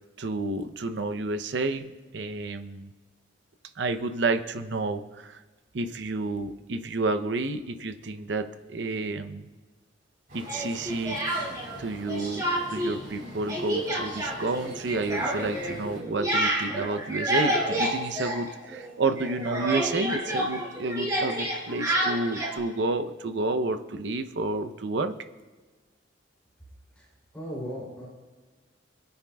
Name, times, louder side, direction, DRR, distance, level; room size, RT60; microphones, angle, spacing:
voice 1, 0.2-2.9 3.8-5.4 5.7-9.5 10.3-11.5 11.8-25.1, right 3 dB, 65° right, 9 dB, 0.7 m, -30 dB
sound 1, 10.3-16.0, equal, 45° right, 3.8 m, -44 dB
Speech, 10.5-11.8 12.1-12.9 13.2-18.9 19.2-22.6, right 1 dB, 20° right, 2.5 m, -29 dB
voice 2, 27.3-28.1, equal, 5° left, -6 dB, 3.0 m, -36 dB
26.5 x 9.4 x 2.3 m, 1.3 s
head